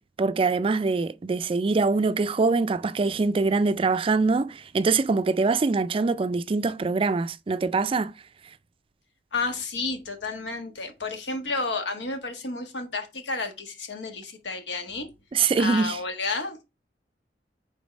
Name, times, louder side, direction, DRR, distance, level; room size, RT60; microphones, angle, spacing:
voice 1, 0.2-8.1 15.3-16.0, right 4 dB, 30° right, 0.3 m, -24 dB
voice 2, 9.3-15.1 15.6-16.6, left 3 dB, 90° left, 1.4 m, -31 dB
5.2 x 4.0 x 5.0 m
head